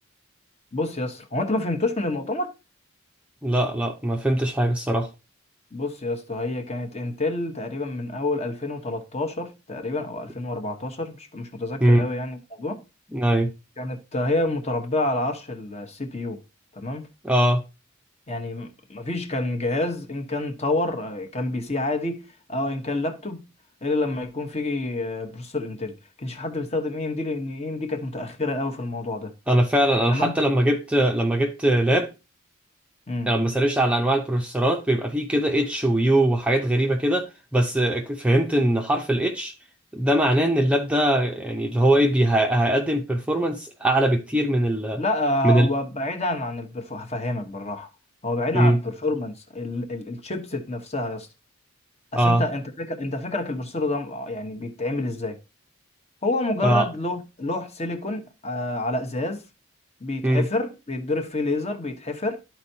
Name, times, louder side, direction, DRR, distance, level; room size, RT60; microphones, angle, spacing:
voice 1, 0.7-2.5 5.7-12.8 13.8-16.4 16.8-17.0 18.3-23.5 23.8-29.3 30.1-30.4 33.1-33.3 45.0-47.9 48.2-51.3 52.1-55.4 56.2-59.4 60.0-62.4, left 2 dB, 30° left, 1.1 m, -28 dB
voice 2, 3.4-5.1 11.8-12.1 13.1-13.5 17.2-17.6 29.5-32.1 33.3-39.5 39.9-45.0 45.4-45.7 48.5-48.8 52.2-52.4 56.6-56.9 60.2-60.5, right 1 dB, 5° right, 0.7 m, -21 dB
12.5 x 4.5 x 2.8 m
head